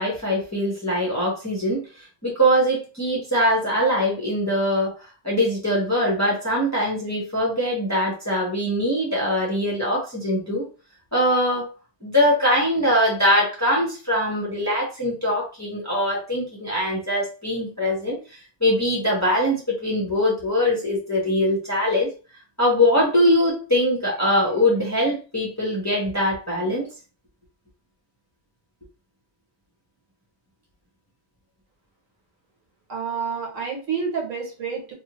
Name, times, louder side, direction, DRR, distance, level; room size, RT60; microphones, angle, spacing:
voice 1, 0.0-5.0 5.2-10.7 11.1-11.7 12.0-22.1 22.6-26.9, equal, 15° left, -4 dB, 0.7 m, -22 dB
voice 2, 32.9-34.9, right 5 dB, 75° right, -1 dB, 1.4 m, -29 dB
2.7 x 2.5 x 2.9 m, 0.34 s
omnidirectional pair, 1.4 m